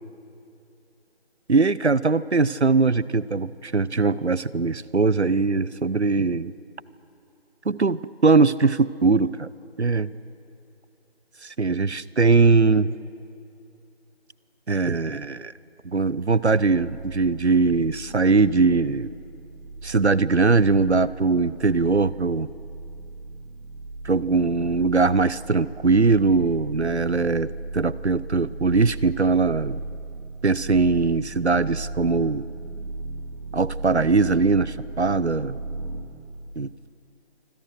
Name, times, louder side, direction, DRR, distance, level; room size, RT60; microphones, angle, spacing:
voice 1, 1.5-6.5 7.6-9.5 9.8-10.1 11.4-12.9 14.7-15.5 15.8-19.1 19.8-22.5 24.0-29.8 30.4-32.5 33.5-35.6 36.6-36.7, right 4 dB, 85° right, 19 dB, 0.9 m, -21 dB
sound 1, 16.3-36.0, right 2 dB, 55° right, 4.4 m, -37 dB
26.0 x 25.5 x 6.4 m, 2.6 s
figure-of-eight pair, 165°, 32 cm